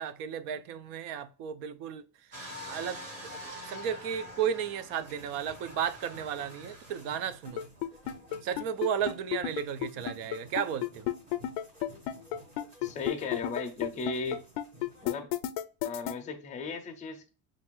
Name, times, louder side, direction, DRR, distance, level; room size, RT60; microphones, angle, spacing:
voice 1, 0.0-2.0 2.7-3.4 3.7-7.6 8.4-11.1, right 8 dB, 70° right, 0.6 m, -34 dB
sound 1, 2.3-7.3 7.9-8.0, left 1 dB, 40° right, 1.4 m, -45 dB
sound 2, 5.0-15.1, right 1 dB, 20° right, 0.8 m, -54 dB
sound 3, 7.5-16.1, left 13 dB, 80° left, 0.5 m, -32 dB
voice 2, 12.8-14.4 15.0-15.3 15.8-17.3, left 4 dB, 20° left, 0.4 m, -36 dB
5.5 x 2.5 x 3.0 m
cardioid pair, 180°, 41 cm